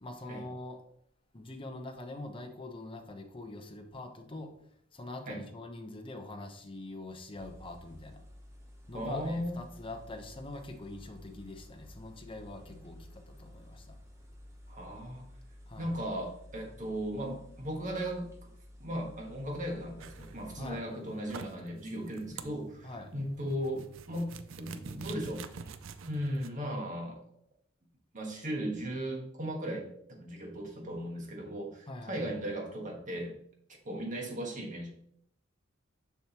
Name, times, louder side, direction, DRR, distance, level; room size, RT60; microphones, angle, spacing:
voice 1, 0.0-0.8 1.3-4.5 4.9-8.2 8.9-13.9 15.7-15.9 20.6-20.8 22.8-23.1 31.9-32.4, left 2 dB, 25° left, 4 dB, 0.8 m, -44 dB
sound 1, 7.3-20.8, left 1 dB, 15° right, 0.9 m, -53 dB
voice 2, 8.9-9.6 14.7-15.2 15.8-18.3 18.8-24.3 24.6-25.4 26.1-27.2 28.1-29.9 30.2-33.3 33.8-34.9, equal, 40° right, 0 dB, 1.5 m, -37 dB
sound 2, 20.0-26.5, right 5 dB, 75° right, 0.5 m, -47 dB
7.0 x 6.1 x 2.9 m, 0.70 s
head